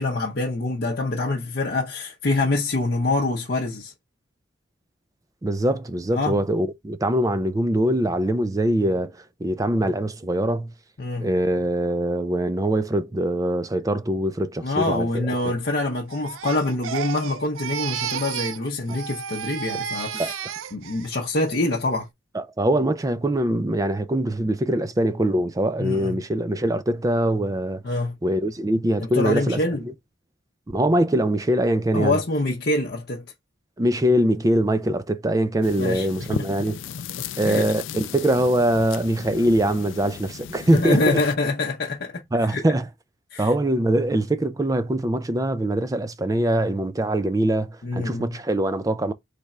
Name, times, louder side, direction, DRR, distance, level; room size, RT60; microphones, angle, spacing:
voice 1, 0.0-3.9 6.1-6.4 11.0-11.3 14.6-20.3 20.7-22.1 25.8-26.2 27.8-28.2 29.0-29.8 31.9-33.2 35.8-36.5 37.4-37.7 40.7-42.6 43.3-43.5 47.8-48.4, left 2 dB, 50° left, 0.7 m, -25 dB
voice 2, 5.4-9.1 9.4-10.7 11.2-15.5 20.1-20.3 22.3-27.8 28.2-29.6 30.7-32.2 33.8-36.8 37.4-41.2 42.3-42.9 43.4-49.1, right 1 dB, 15° right, 0.4 m, -23 dB
Crying sobbing, 16.1-18.6 18.9-21.1 21.5-21.9, right 9 dB, 85° right, 0.4 m, -32 dB
sound 1, 35.6-41.4, left 8 dB, 70° left, 0.3 m, -36 dB
3.6 x 3.3 x 4.2 m
head